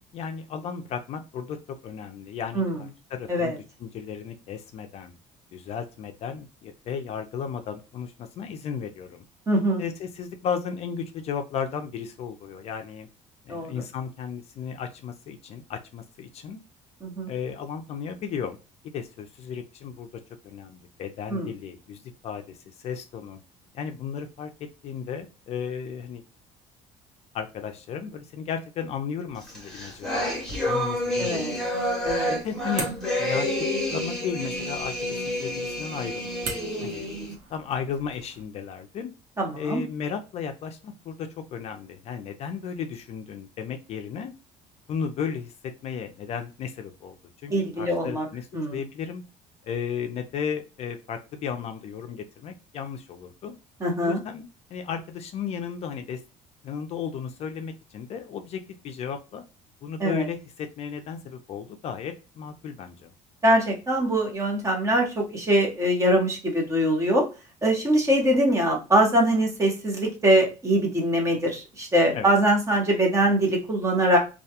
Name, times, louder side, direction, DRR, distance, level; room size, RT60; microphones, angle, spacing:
voice 1, 0.0-1.6 1.8-3.5 3.8-5.1 5.5-9.2 9.8-13.1 13.5-16.6 17.3-18.6 18.8-20.1 20.4-23.4 23.7-24.5 24.8-26.2 27.3-31.7 32.4-32.9 33.2-36.3 36.8-37.1 37.5-39.1 39.6-44.3 44.9-47.1 47.4-49.2 49.6-53.6 54.0-56.2 56.6-59.4 59.8-63.1 72.1-72.3, left 7 dB, 50° left, 6 dB, 0.4 m, -34 dB
voice 2, 9.5-9.8 13.5-13.8 17.0-17.3 21.3-21.5 31.2-31.5 32.0-32.4 39.4-39.8 47.5-48.3 48.5-48.8 53.8-54.2 60.0-60.3 63.4-67.3 67.6-74.2, right 1 dB, 20° right, 1 dB, 0.9 m, -23 dB
sound 1, 29.3-38.4, right 3 dB, 80° right, 0.9 m, -43 dB
sound 2, 29.5-37.3, left 1 dB, 5° left, 1.0 m, -29 dB
2.3 x 2.1 x 2.8 m, 0.30 s
cardioid pair, 125°, 14 cm